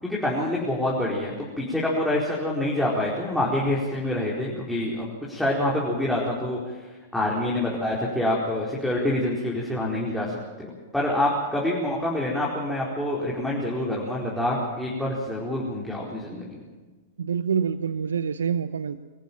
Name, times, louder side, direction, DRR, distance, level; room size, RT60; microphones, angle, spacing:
voice 1, 0.0-6.6 7.1-16.6, left 1 dB, ahead, -6 dB, 4.6 m, -26 dB
voice 2, 17.2-19.0, right 7 dB, 80° right, 13 dB, 0.7 m, -26 dB
25.5 x 14.5 x 7.5 m, 1.3 s
hypercardioid pair, 105°, 0 cm